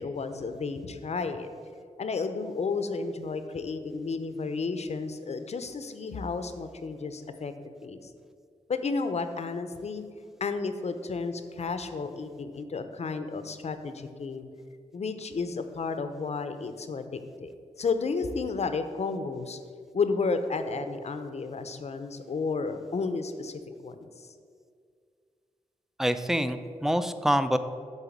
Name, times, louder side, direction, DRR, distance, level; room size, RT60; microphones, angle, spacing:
voice 1, 0.0-1.5 2.0-7.5 7.8-8.1 8.7-10.0 10.4-14.4 14.9-17.5 17.8-19.6 19.9-24.3, left 4 dB, 55° left, 9 dB, 0.7 m, -32 dB
voice 2, 26.0-27.6, equal, 5° right, 10 dB, 0.5 m, -26 dB
9.0 x 4.0 x 7.2 m, 2.2 s
cardioid pair, 75°, 13 cm